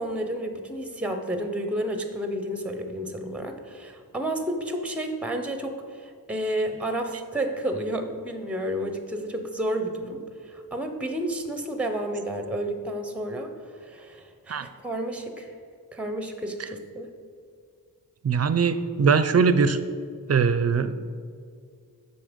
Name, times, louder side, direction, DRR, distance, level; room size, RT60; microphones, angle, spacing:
voice 1, 0.0-13.5 13.8-15.6 15.9-17.1, right 1 dB, 5° right, 6 dB, 0.7 m, -31 dB
voice 2, 18.2-19.8 20.3-21.1, right 5 dB, 45° right, 12 dB, 0.5 m, -21 dB
12.5 x 4.3 x 5.1 m, 2.2 s
wide cardioid pair, 110°, 36 cm